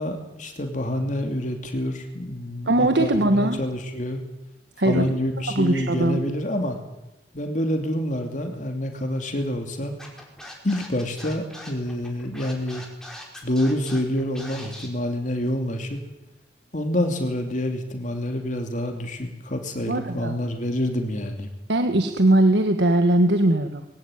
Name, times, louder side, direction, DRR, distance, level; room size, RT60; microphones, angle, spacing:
voice 1, 0.0-4.2 4.8-6.8 7.3-9.9 10.6-12.8 13.4-16.0 16.7-21.5, left 1 dB, 45° left, 4 dB, 2.8 m, -27 dB
voice 2, 2.7-3.6 4.8-5.1 5.5-6.2 19.9-20.4 21.7-23.8, right 1 dB, 75° right, 7 dB, 1.6 m, -20 dB
Scratching (performance technique), 10.0-14.9, left 1 dB, 5° left, 4.9 m, -41 dB
22.0 x 17.5 x 9.4 m, 0.96 s
head